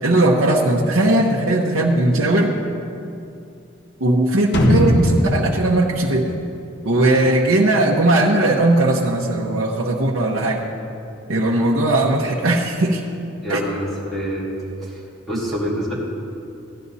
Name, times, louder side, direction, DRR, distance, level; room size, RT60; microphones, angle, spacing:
voice 1, 0.0-2.5 4.0-6.4 6.8-10.7 11.3-13.0 13.5-13.6, right 2 dB, 75° right, -2 dB, 1.0 m, -18 dB
sound 1, 4.5-7.3 7.7-7.8, left 1 dB, 55° left, 1.3 m, -20 dB
voice 2, 13.4-14.5 14.8-15.0 15.3-15.9, equal, ahead, -8 dB, 2.7 m, -26 dB
15.5 x 11.0 x 4.1 m, 2.6 s
head